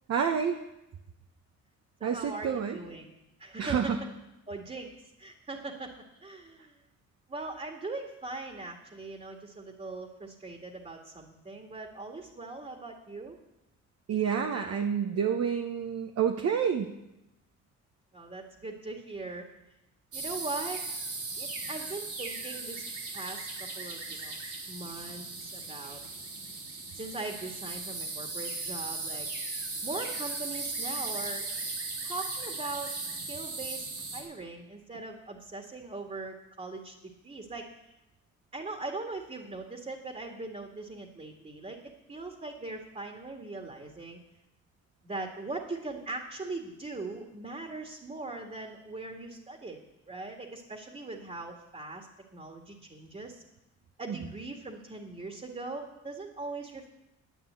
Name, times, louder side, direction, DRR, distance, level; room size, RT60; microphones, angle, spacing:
voice 1, 0.1-0.6 2.0-2.8 3.6-4.0 14.1-16.9 54.1-54.2, right 7 dB, 55° right, 4 dB, 1.0 m, -28 dB
voice 2, 2.0-3.1 3.4-3.9 4.5-4.9 5.2-5.9 6.2-6.8 7.3-13.4 18.1-19.5 20.1-20.8 21.3-22.8 23.1-26.0 27.0-29.3 29.8-31.5 32.0-32.9 33.3-37.7 38.5-44.2 45.0-49.8 50.1-53.4 54.0-56.9, right 3 dB, 25° right, 2 dB, 1.9 m, -40 dB
sound 1, 20.1-34.2, right 3 dB, 80° right, 4.1 m, -37 dB
10.0 x 9.4 x 8.2 m, 0.91 s
cardioid pair, 90°, 30 cm